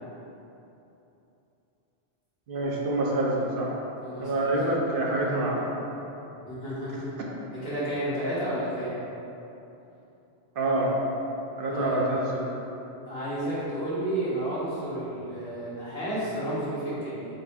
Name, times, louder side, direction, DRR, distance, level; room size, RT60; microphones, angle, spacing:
voice 1, 2.5-3.7 4.2-5.7 10.6-10.9 11.6-12.4, right 1 dB, 55° right, -3 dB, 0.8 m, -26 dB
voice 2, 4.0-4.5 6.4-7.1 7.5-8.9 11.7-12.0 13.1-17.3, right 1 dB, 60° left, -11 dB, 1.6 m, -31 dB
4.0 x 2.6 x 4.5 m, 3.0 s
omnidirectional pair, 1.2 m